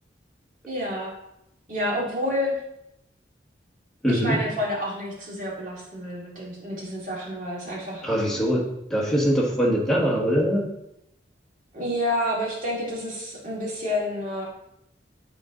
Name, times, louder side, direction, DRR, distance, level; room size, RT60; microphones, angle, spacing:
voice 1, 0.7-1.1 1.7-2.6 4.1-8.0 11.7-14.5, left 1 dB, 45° right, -5 dB, 2.4 m, -29 dB
voice 2, 4.0-4.4 8.0-10.6, equal, 5° left, -4 dB, 1.5 m, -23 dB
9.6 x 3.8 x 3.8 m, 0.82 s
head